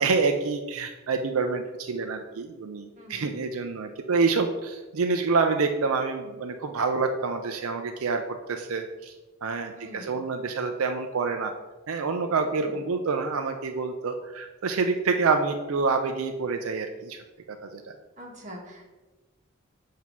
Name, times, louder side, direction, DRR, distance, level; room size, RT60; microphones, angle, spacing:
voice 1, 0.0-9.1 9.4-11.5 11.9-17.8, right 4 dB, 80° right, 5 dB, 0.5 m, -27 dB
voice 2, 3.0-3.3 9.7-10.2 12.6-12.8 18.2-18.9, equal, 35° right, -2 dB, 1.3 m, -44 dB
7.6 x 2.8 x 5.9 m, 1.2 s
head